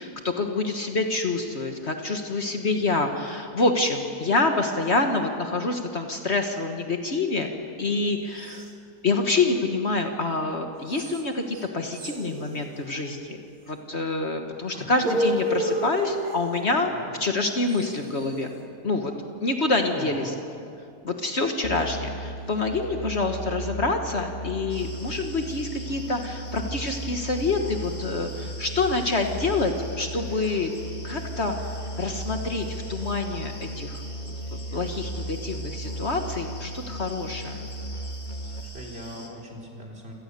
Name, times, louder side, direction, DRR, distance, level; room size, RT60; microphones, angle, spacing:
voice 1, 0.0-7.5 7.8-8.7 9.0-16.9 17.2-18.5 18.8-19.1 19.4-20.3 21.0-30.7 31.0-37.6, left 3 dB, 50° left, 4 dB, 1.6 m, -27 dB
sound 1, 8.4-8.7 10.9-11.2 11.5-11.6 11.9-13.2 14.9-16.6 17.7-18.4, equal, 75° right, 2.2 m, -30 dB
voice 2, 19.9-20.4 38.4-40.1, equal, 40° right, 0 dB, 4.0 m, -40 dB
Musical instrument, 21.6-38.6, right 1 dB, 30° left, 2.1 m, -36 dB
sound 2, 24.7-39.3, left 1 dB, 15° left, 2.0 m, -46 dB
27.5 x 18.0 x 6.8 m, 2.4 s
omnidirectional pair, 1.6 m